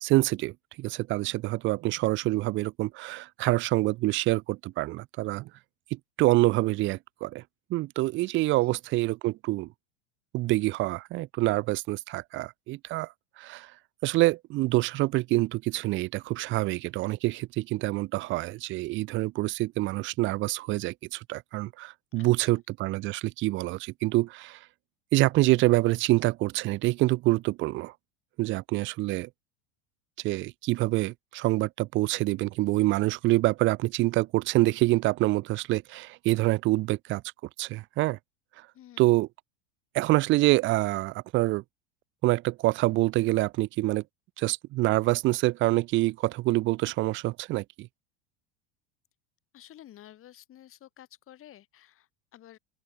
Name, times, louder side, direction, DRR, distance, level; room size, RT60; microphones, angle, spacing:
voice 1, 0.0-5.5 5.9-7.4 7.7-9.7 10.3-13.7 14.0-24.6 25.1-27.9 28.4-29.3 30.2-37.2 37.6-38.2 39.0-39.3 39.9-41.6 42.2-44.0 44.4-47.9, right 19 dB, 35° right, 0.4 m, -26 dB
voice 2, 38.7-39.1 49.5-52.6, left 12 dB, 35° left, 1.7 m, -52 dB
open air
hypercardioid pair, 100°, 37 cm